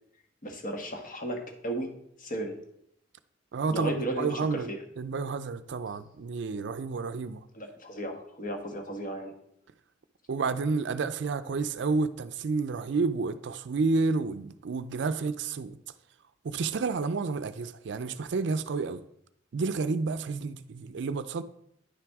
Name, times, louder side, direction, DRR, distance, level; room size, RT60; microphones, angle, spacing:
voice 1, 0.4-2.6 3.7-4.8 7.5-9.3, right 1 dB, 45° left, 1.3 m, -35 dB
voice 2, 3.5-4.7 5.0-7.4 10.3-15.8 16.4-19.0 19.5-21.4, right 4 dB, 65° right, 0.4 m, -30 dB
10.0 x 5.9 x 3.5 m
head